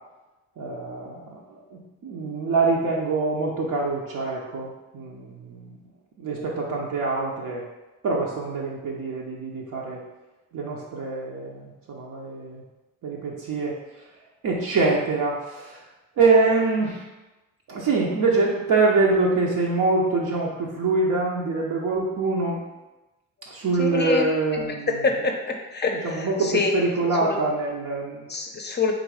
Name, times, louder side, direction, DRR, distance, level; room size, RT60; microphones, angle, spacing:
voice 1, 0.6-1.4 1.7-5.7 6.2-7.6 8.0-10.0 10.5-12.6 13.0-13.8 14.4-15.8 16.2-17.0 17.7-22.6 23.5-25.0 25.9-28.3, right 3 dB, 70° right, -3 dB, 0.7 m, -24 dB
voice 2, 23.8-24.3 24.5-24.6 25.0-26.7 28.3-28.9, left 3 dB, 30° left, 2 dB, 0.6 m, -26 dB
3.9 x 2.7 x 4.7 m, 1.1 s
cardioid pair, 110°, 34 cm